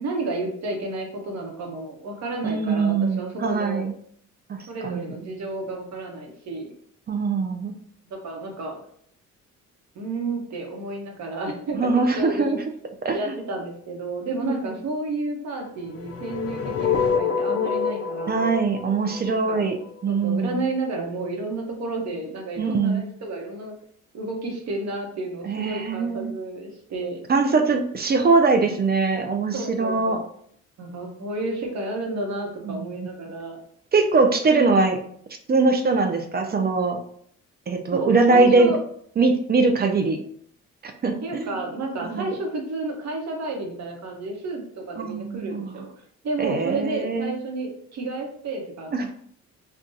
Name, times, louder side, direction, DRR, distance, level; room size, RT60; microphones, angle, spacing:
voice 1, 0.0-3.8 4.7-6.7 8.1-8.7 9.9-12.6 13.1-18.5 19.2-19.7 20.1-23.7 24.1-27.2 29.5-30.2 30.8-33.6 37.9-38.8 41.2-45.9 46.2-49.1, right 2 dB, 60° right, 1 dB, 1.0 m, -31 dB
voice 2, 2.4-3.9 4.5-4.6 4.8-5.1 7.1-7.7 11.7-12.6 13.0-13.3 14.4-14.7 18.3-19.7 20.0-20.6 22.6-23.0 25.4-26.3 27.3-30.2 33.0-33.1 33.9-35.0 35.5-37.0 37.7-38.7 39.2-40.2 41.0-41.5 42.0-42.4 45.0-45.8 46.4-47.3 48.9-49.1, right 4 dB, 35° right, 5 dB, 0.4 m, -22 dB
sound 1, 15.9-20.0, left 6 dB, 50° left, 0.4 m, -26 dB
3.8 x 2.3 x 2.6 m, 0.64 s
cardioid pair, 90°, 30 cm